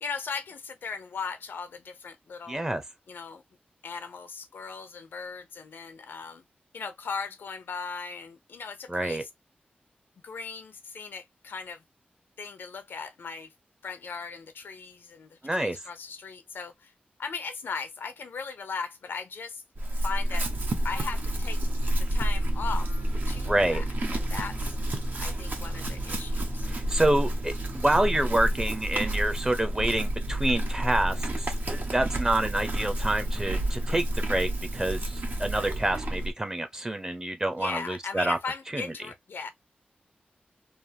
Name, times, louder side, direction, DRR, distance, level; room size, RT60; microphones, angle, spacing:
voice 1, 0.0-2.6 3.1-3.4 3.8-6.4 6.7-9.3 10.2-11.8 12.4-13.5 13.8-16.9 17.2-19.6 20.0-20.5 20.8-21.6 22.1-22.9 23.3-23.8 24.1-24.7 25.2-26.7 37.6-39.5, left 5 dB, 85° left, 0.5 m, -38 dB
voice 2, 2.5-2.8 8.9-9.2 15.4-15.8 23.5-23.8 26.7-35.1 35.4-38.4 38.7-38.9, right 1 dB, 20° right, 0.7 m, -27 dB
Chewing mastication / Livestock farm animals working animals, 19.7-36.3, right 1 dB, 55° right, 0.8 m, -29 dB
3.3 x 2.0 x 2.7 m
wide cardioid pair, 75°, 3 cm